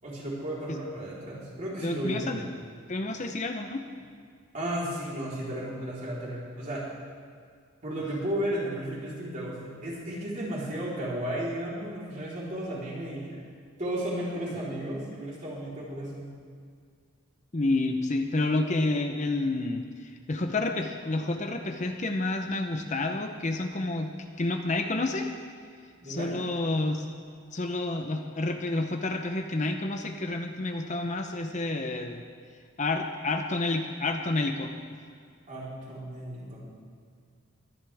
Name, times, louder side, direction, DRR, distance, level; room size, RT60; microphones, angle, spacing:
voice 1, 0.0-2.4 4.5-6.9 7.8-13.4 13.8-16.3 26.0-26.3 35.5-36.7, right 1 dB, 40° right, -7 dB, 4.0 m, -34 dB
voice 2, 1.8-2.5 2.9-3.8 17.5-24.1 24.4-25.3 26.0-27.1 27.5-32.2 32.8-34.7, left 2 dB, 35° left, 4 dB, 0.8 m, -29 dB
22.5 x 11.0 x 3.5 m, 2.1 s
head